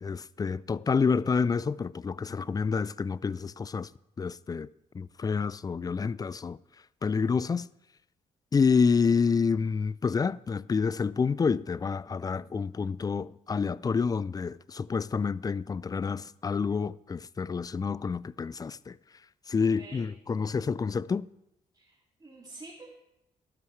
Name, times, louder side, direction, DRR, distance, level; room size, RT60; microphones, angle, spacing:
voice 1, 0.0-3.9 4.2-4.7 4.9-6.6 7.0-7.7 8.5-19.0 19.5-21.3, left 5 dB, 25° left, 0.3 m, -28 dB
voice 2, 21.7-22.9, right 2 dB, 25° right, 2.6 m, -48 dB
13.0 x 12.0 x 3.3 m
hypercardioid pair, 50°, 16 cm